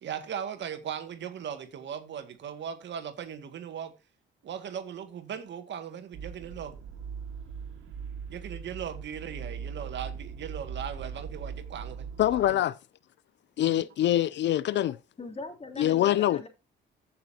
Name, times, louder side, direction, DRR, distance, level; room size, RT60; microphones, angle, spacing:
voice 1, 0.0-3.9 4.4-6.8 8.3-12.6 13.6-13.9, right 8 dB, 65° right, 1.9 m, -38 dB
sound 1, 6.1-12.5, right 6 dB, 85° right, 2.2 m, -40 dB
voice 2, 12.2-12.7 13.6-15.0 15.8-16.4, left 13 dB, 65° left, 0.4 m, -24 dB
voice 3, 15.2-16.5, left 3 dB, 30° left, 2.9 m, -41 dB
14.5 x 6.4 x 2.8 m
cardioid pair, 90°, 20 cm